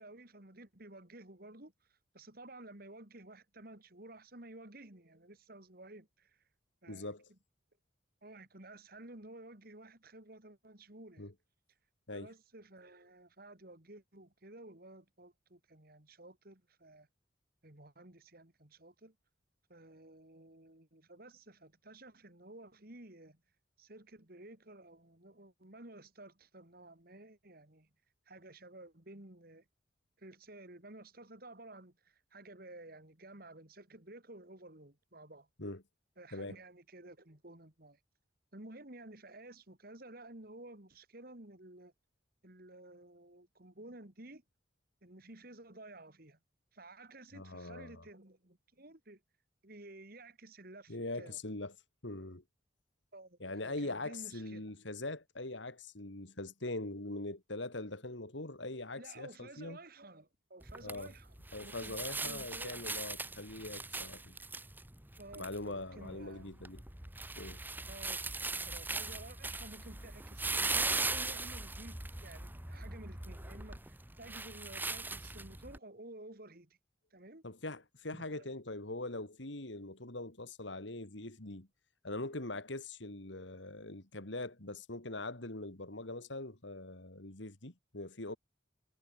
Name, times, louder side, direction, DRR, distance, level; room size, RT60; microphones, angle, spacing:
voice 1, 0.0-6.4 6.8-7.1 8.2-11.2 12.1-17.1 17.6-19.1 19.7-23.4 23.8-27.9 28.3-29.6 30.2-35.5 36.2-38.0 38.5-41.9 42.4-44.4 45.0-46.4 46.7-49.2 49.6-51.4 53.1-54.7 59.0-61.4 61.6-63.0 65.2-66.7 67.9-68.2 68.6-76.8 77.1-77.4 78.1-78.5, right 2 dB, 50° right, 2.9 m, -53 dB
voice 2, 6.9-7.3 11.2-11.3 12.1-12.3 35.6-35.8 36.3-36.6 47.3-48.0 50.9-51.7 52.0-52.4 53.4-59.8 60.8-61.1 61.5-64.3 65.4-66.8 67.3-67.6 77.4-81.7 82.0-88.4, left 2 dB, 75° left, 3.0 m, -42 dB
sound 1, 60.6-75.8, right 3 dB, 10° right, 1.4 m, -40 dB
head